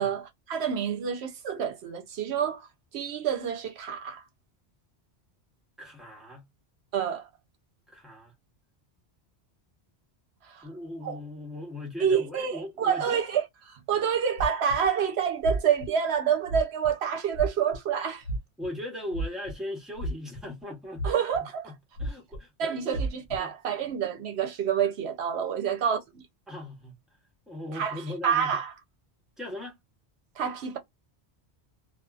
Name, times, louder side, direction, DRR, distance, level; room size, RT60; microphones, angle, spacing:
voice 1, 0.0-2.7 2.9-4.2 6.9-7.3 10.4-10.7 11.0-11.2 12.0-18.2 21.0-21.7 22.6-26.2 27.7-28.7 30.4-30.8, right 7 dB, 75° right, 0.8 m, -28 dB
voice 2, 5.8-6.4 7.9-8.3 10.6-13.2 18.6-21.0 21.6-21.7 22.0-23.0 23.4-23.5 25.6-25.7 26.5-26.9 27.5-28.6 29.4-29.8, left 1 dB, ahead, 0.9 m, -39 dB
sound 1, 14.4-14.9 15.4-15.9 16.5-16.9 17.3-17.8 18.2-18.7 19.1-19.6 20.0-20.6 21.0-21.4 22.0-22.4 22.9-23.4, right 2 dB, 70° left, 0.9 m, -31 dB
2.6 x 2.4 x 2.3 m
omnidirectional pair, 1.1 m